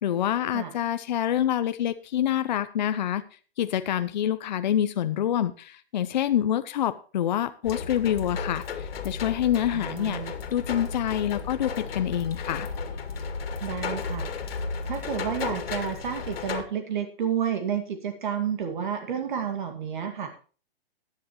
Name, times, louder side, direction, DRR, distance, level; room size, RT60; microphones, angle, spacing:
voice 1, 0.0-3.2 3.6-10.2 10.5-12.7, left 11 dB, 45° left, 11 dB, 0.7 m, -26 dB
sound 1, 7.6-16.6, left 5 dB, 70° left, 2.5 m, -34 dB
voice 2, 9.7-10.3 13.6-14.3 14.8-20.4, right 8 dB, 50° right, 6 dB, 2.2 m, -30 dB
16.0 x 10.5 x 3.1 m, 0.38 s
hypercardioid pair, 165°, 31 cm